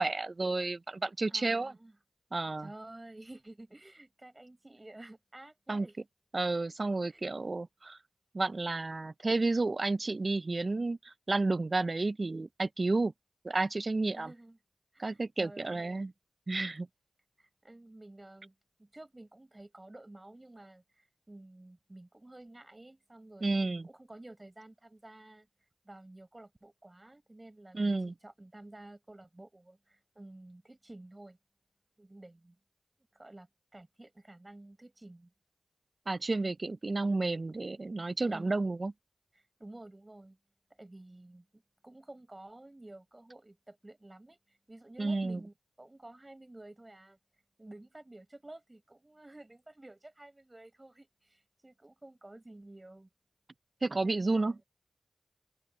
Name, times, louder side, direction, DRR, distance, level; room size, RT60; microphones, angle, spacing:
voice 1, 0.0-1.7 2.3-2.7 5.7-5.9 6.3-8.0 8.3-13.1 13.4-14.3 15.0-16.1 16.5-16.9 23.4-23.9 27.7-28.1 36.1-38.9 45.0-45.4 53.8-54.6, right 3 dB, 50° right, 0.4 m, -31 dB
voice 2, 1.3-2.0 2.6-6.0 7.1-7.2 14.1-14.6 14.9-15.8 17.4-18.5 18.8-23.6 23.8-25.5 25.8-31.4 32.0-32.6 33.1-33.5 33.7-35.3 38.2-38.5 39.3-40.4 40.8-47.2 47.6-53.1 54.0-54.6, right 2 dB, 30° right, 4.9 m, -51 dB
open air
cardioid pair, 45°, 0 cm